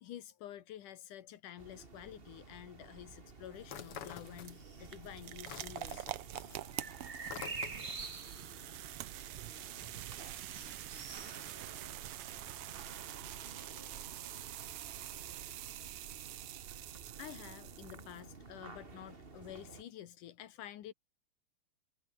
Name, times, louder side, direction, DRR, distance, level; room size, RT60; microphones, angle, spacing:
voice 1, 0.0-6.2 17.2-20.9, left 12 dB, 80° left, 2.8 m, -50 dB
sound 1, 1.6-19.8, right 4 dB, 25° right, 1.4 m, -50 dB
sound 2, 3.4-18.3, right 14 dB, 80° right, 1.3 m, -46 dB
sound 3, 3.6-4.9 5.2-8.1, left 10 dB, 55° left, 1.9 m, -48 dB
voice 2, 7.5-8.8 9.2-10.2 10.6-12.7 13.1-15.1, left 5 dB, 40° left, 4.3 m, -66 dB
omnidirectional pair, 3.7 m